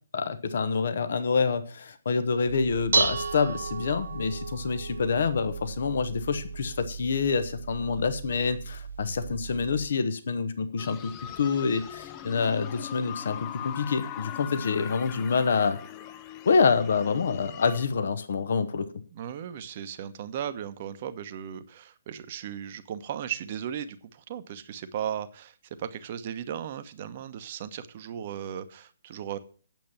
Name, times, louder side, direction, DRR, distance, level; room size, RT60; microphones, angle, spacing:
voice 1, 0.1-11.1 11.4-15.8 16.4-18.9, left 5 dB, 55° left, 11 dB, 1.1 m, -27 dB
Dishes pots and pans, 2.5-9.9, right 4 dB, 65° right, 1.1 m, -33 dB
sound 1, 10.8-17.9, left 11 dB, 25° left, 0.6 m, -41 dB
voice 2, 19.1-29.4, right 9 dB, 35° right, 10 dB, 1.0 m, -36 dB
9.1 x 7.5 x 7.2 m, 0.43 s
figure-of-eight pair, 135°, 0 cm